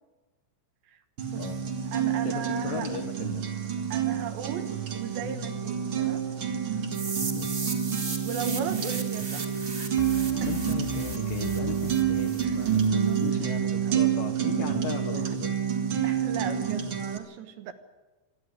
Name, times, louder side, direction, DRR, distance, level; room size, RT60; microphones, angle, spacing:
sound 1, 1.2-17.2, right 8 dB, 50° right, 1.5 m, -28 dB
voice 1, 1.4-1.7 2.2-3.5 7.3-7.6 10.4-15.6, left 8 dB, 65° left, 3 dB, 2.3 m, -37 dB
voice 2, 1.9-2.9 3.9-6.2 8.2-10.0 10.4-10.5 12.4-12.7 13.0-13.5 13.8-14.2 14.6-14.9 16.0-17.7, right 8 dB, 70° right, 8 dB, 3.3 m, -37 dB
sound 2, 3.1-3.5 10.0-13.0, left 13 dB, 85° left, 2.2 m, -42 dB
sound 3, 6.9-12.9, right 3 dB, 25° right, 2.7 m, -37 dB
26.5 x 11.5 x 9.8 m, 1.2 s
omnidirectional pair, 5.6 m